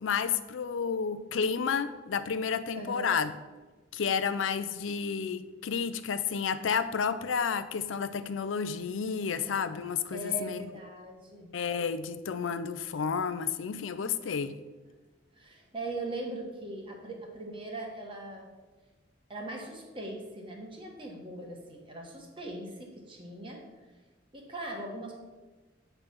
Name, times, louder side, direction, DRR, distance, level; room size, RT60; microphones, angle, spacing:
voice 1, 0.0-3.3 3.9-10.7 11.5-14.6, left 6 dB, 80° left, 12 dB, 0.5 m, -31 dB
voice 2, 2.8-3.2 10.1-11.5 15.3-18.5 19.3-23.6 24.3-25.1, right 2 dB, 25° right, 0 dB, 1.3 m, -40 dB
8.7 x 3.3 x 5.8 m, 1.2 s
head